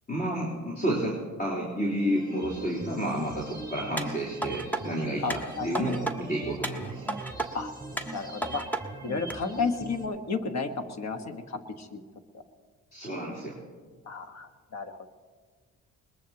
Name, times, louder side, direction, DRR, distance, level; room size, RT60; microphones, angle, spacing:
voice 1, 0.1-7.0 12.9-13.6, equal, 30° left, -4 dB, 3.7 m, -30 dB
sound 1, 2.1-10.1, right 2 dB, 15° right, 6.5 m, -42 dB
sound 2, 4.0-4.8 5.3-6.2 6.6-7.5 8.0-8.8 9.3-9.4, right 2 dB, 5° left, 1.4 m, -33 dB
voice 2, 5.2-5.8 7.5-7.7 8.1-8.6 9.0-12.0 14.1-15.1, left 4 dB, 60° left, 6 dB, 1.6 m, -32 dB
22.0 x 20.5 x 3.0 m, 1.5 s
cardioid pair, 90°, 30 cm